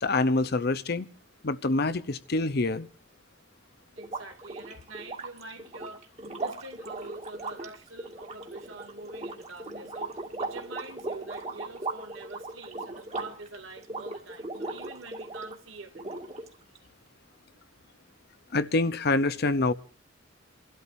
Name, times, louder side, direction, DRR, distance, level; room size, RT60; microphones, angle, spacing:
voice 1, 0.0-1.1 1.4-2.9 18.5-19.7, left 2 dB, 55° left, 0.8 m, -26 dB
voice 2, 3.9-6.0 6.4-16.3, right 3 dB, 85° right, 2.7 m, -45 dB
sound 1, 4.0-15.6 15.9-16.8, right 2 dB, 35° right, 2.0 m, -38 dB
29.0 x 12.5 x 2.7 m
head